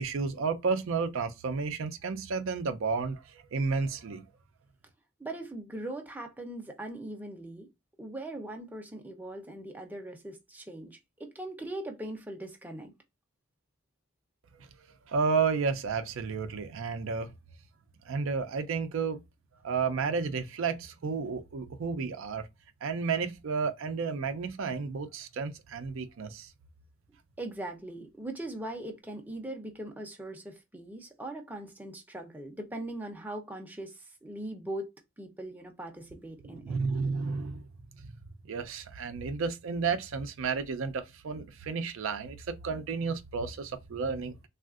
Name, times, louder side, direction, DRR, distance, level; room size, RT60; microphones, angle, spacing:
voice 1, 0.0-4.2 14.6-14.7 15.1-17.3 18.1-19.2 19.6-22.5 22.8-26.5 36.4-37.7 38.0-38.1 38.5-44.5, right 5 dB, 65° right, 0.4 m, -32 dB
voice 2, 5.2-7.7 8.0-12.9 27.4-34.9 35.2-36.8, right 1 dB, 10° right, 0.6 m, -40 dB
3.5 x 2.4 x 2.3 m
head